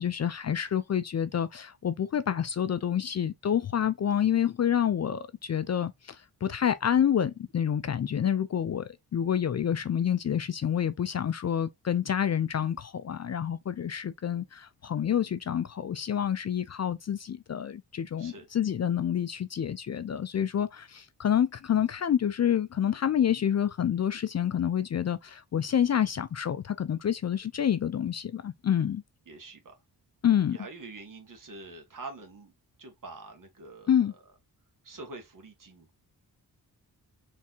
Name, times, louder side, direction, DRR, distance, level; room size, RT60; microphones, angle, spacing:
voice 1, 0.0-29.0 30.2-30.6 33.9-34.1, left 9 dB, 45° left, 0.4 m, -28 dB
voice 2, 29.3-29.7 30.5-32.5 32.8-33.9 34.8-35.9, right 3 dB, 55° right, 1.7 m, -45 dB
4.6 x 3.5 x 2.7 m
wide cardioid pair, 100°, 40 cm